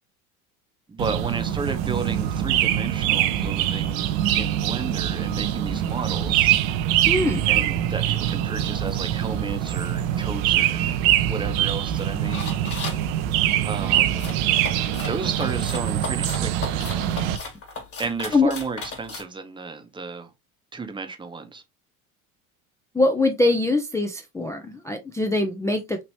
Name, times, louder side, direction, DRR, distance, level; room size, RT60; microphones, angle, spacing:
voice 1, 0.9-6.6 7.5-10.9 11.3-12.5 13.6-14.2 15.0-16.8 18.0-20.3 20.7-21.6, right 4 dB, 10° right, 0.7 m, -33 dB
sound 1, 1.0-17.4, right 11 dB, 65° right, 0.6 m, -24 dB
voice 2, 7.1-7.4 18.3-18.5 22.9-26.0, left 2 dB, 10° left, 0.3 m, -22 dB
sound 2, 12.3-13.0 14.2-19.2, left 4 dB, 30° left, 1.6 m, -35 dB
3.2 x 2.9 x 2.8 m
hypercardioid pair, 75°, 43 cm